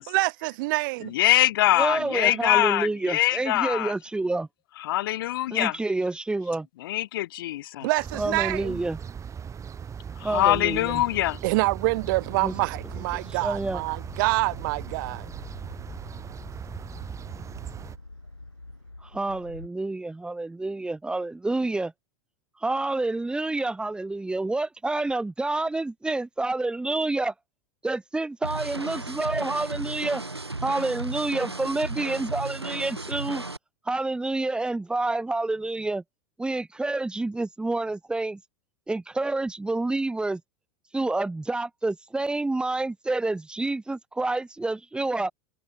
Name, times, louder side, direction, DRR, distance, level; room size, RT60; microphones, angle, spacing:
voice 1, 0.1-1.1 7.8-8.8 11.4-15.3, right 24 dB, 55° right, 3.0 m, -26 dB
voice 2, 1.0-3.9 4.8-5.8 6.8-7.9 10.2-11.4, left 15 dB, 60° left, 0.9 m, -23 dB
voice 3, 1.8-4.5 5.5-6.7 8.1-9.0 10.2-11.0 12.4-12.5 13.1-13.8 19.0-21.9 22.6-27.3 27.8-30.2 30.6-33.4 33.9-36.0 36.4-38.4 38.9-40.4 40.9-45.3, right 2 dB, 5° right, 0.8 m, -28 dB
sound 1, 8.0-18.0, right 7 dB, 25° right, 3.0 m, -39 dB
sound 2, 11.9-19.7, left 2 dB, 90° left, 4.0 m, -46 dB
sound 3, 28.4-33.6, right 2 dB, 90° right, 2.6 m, -34 dB
figure-of-eight pair, 85°, 13 cm